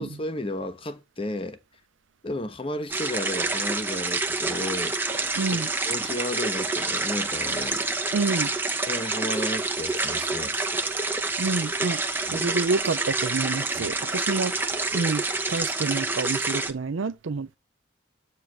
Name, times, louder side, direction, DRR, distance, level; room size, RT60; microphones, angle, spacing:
voice 1, 0.0-1.6 2.2-5.0 5.8-7.9 8.9-10.7 12.3-12.5 13.7-13.9, left 1 dB, 25° left, 1.0 m, -33 dB
sound 1, 2.9-16.7, right 3 dB, 10° right, 0.8 m, -28 dB
voice 2, 5.4-5.7 8.1-8.5 11.4-12.0 12.3-15.2 15.5-17.6, right 3 dB, 75° right, 0.5 m, -28 dB
8.7 x 3.0 x 6.3 m
head